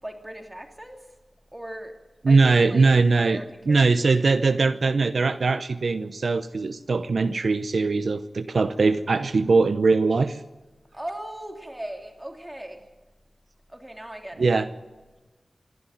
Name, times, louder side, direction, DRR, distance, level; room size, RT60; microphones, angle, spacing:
voice 1, 0.0-1.1 1.5-1.9 2.3-3.9 10.9-12.9 13.7-14.6, right 1 dB, 15° right, 3 dB, 3.0 m, -38 dB
voice 2, 2.2-3.4 3.7-10.4 14.4-14.7, right 4 dB, 75° right, 11 dB, 0.7 m, -21 dB
26.0 x 11.0 x 9.2 m, 1.2 s
wide cardioid pair, 90°, 0 cm